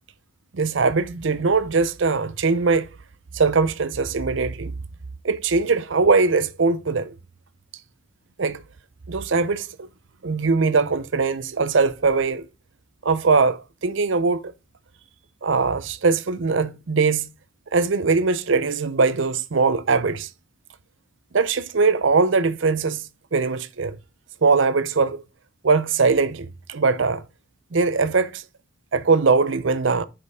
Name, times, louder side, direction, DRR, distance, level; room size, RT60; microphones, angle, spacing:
voice 1, 0.5-2.9 3.3-4.7 5.2-7.1 8.4-8.6 9.1-9.9 10.2-12.5 13.0-14.5 15.4-17.3 17.7-20.3 21.3-23.0 23.3-24.0 24.4-25.2 25.6-27.2 27.7-28.4 28.9-30.0, right 4 dB, 65° right, 0.6 m, -21 dB
6.8 x 5.1 x 4.9 m
head